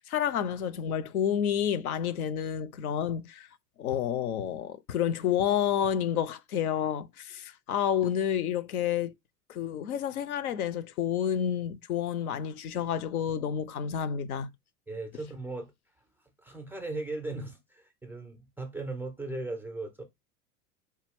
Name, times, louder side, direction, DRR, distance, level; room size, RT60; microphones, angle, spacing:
voice 1, 0.0-3.5 3.8-9.1 9.5-14.5, left 9 dB, 65° left, 0.6 m, -29 dB
voice 2, 14.9-15.7 16.4-20.0, right 2 dB, 5° right, 0.4 m, -37 dB
4.3 x 2.3 x 3.4 m
figure-of-eight pair, 85°, 47 cm